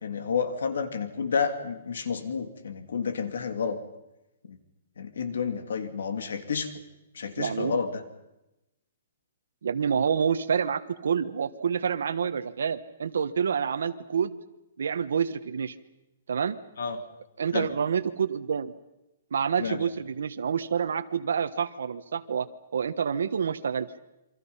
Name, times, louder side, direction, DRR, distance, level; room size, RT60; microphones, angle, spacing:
voice 1, 0.0-3.8 4.5-4.6 5.0-6.7 7.1-8.0 16.8-17.0 17.5-17.7 19.6-19.8, left 6 dB, 80° left, 8 dB, 3.0 m, -30 dB
voice 2, 7.4-7.8 9.6-14.4 14.8-15.7 16.3-16.6 17.4-18.7 19.3-22.5 22.7-23.9, right 7 dB, 80° right, 7 dB, 1.2 m, -28 dB
28.5 x 24.0 x 5.7 m, 0.94 s
hypercardioid pair, 170°, 0 cm